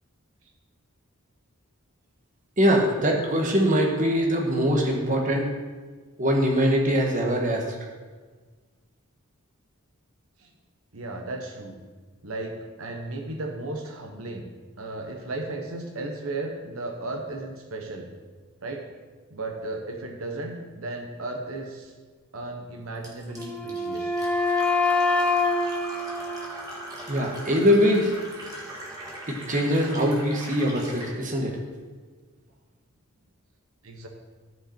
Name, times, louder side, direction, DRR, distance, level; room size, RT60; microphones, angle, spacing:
voice 1, 2.6-5.5 6.2-7.8 27.1-28.1 29.3-31.6, equal, 35° right, 0 dB, 1.3 m, -22 dB
voice 2, 10.9-11.7 12.2-14.5 14.8-18.1 18.6-18.9 19.3-21.9 22.3-24.2 33.8-34.1, right 2 dB, 75° right, 2 dB, 1.0 m, -35 dB
Fill (with liquid), 23.0-31.1, right 1 dB, 15° right, 1.7 m, -40 dB
Wind instrument woodwind instrument, 23.3-27.3, left 3 dB, 5° left, 0.6 m, -26 dB
13.5 x 5.1 x 4.4 m, 1.4 s
head